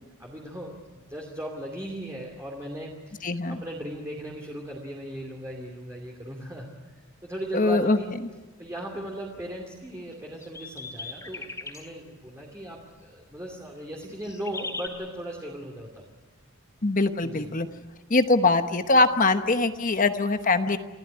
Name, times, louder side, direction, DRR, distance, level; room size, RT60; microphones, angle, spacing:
voice 1, 0.2-6.7 7.0-8.1 8.6-16.0 17.2-17.5, right 1 dB, 15° right, -1 dB, 2.7 m, -38 dB
voice 2, 3.2-3.6 7.5-8.0 16.8-17.7 18.1-20.8, left 3 dB, 40° left, 9 dB, 1.1 m, -22 dB
sound 1, 10.1-11.8 14.0-14.9, left 3 dB, 15° left, 3.7 m, -37 dB
27.0 x 15.0 x 9.7 m, 1.3 s
head